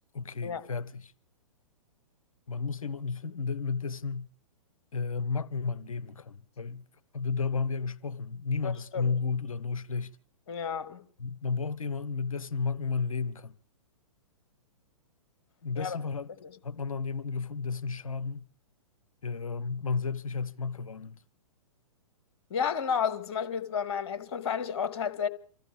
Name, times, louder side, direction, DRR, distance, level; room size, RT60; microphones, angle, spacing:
voice 1, 0.1-1.1 2.5-4.3 4.9-6.8 7.1-10.1 11.2-13.5 15.6-16.3 16.6-18.5 19.2-21.2, left 5 dB, 70° left, 0.7 m, -32 dB
voice 2, 8.6-9.1 10.5-11.0 15.7-16.0 22.5-25.3, left 7 dB, 50° left, 1.7 m, -31 dB
26.0 x 15.0 x 3.6 m
figure-of-eight pair, 115°, 18 cm